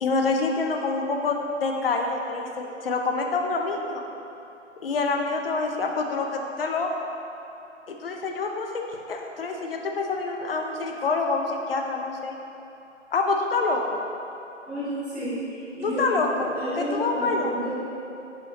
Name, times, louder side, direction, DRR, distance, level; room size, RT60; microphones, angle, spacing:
voice 1, 0.0-4.0 4.8-6.9 7.9-12.3 13.1-13.8 15.8-16.5 16.8-17.5, left 3 dB, 50° left, 2 dB, 0.8 m, -26 dB
voice 2, 14.6-16.0 16.4-17.7, equal, ahead, -16 dB, 0.6 m, -31 dB
10.5 x 5.2 x 2.8 m, 2.9 s
hypercardioid pair, 155°, 38 cm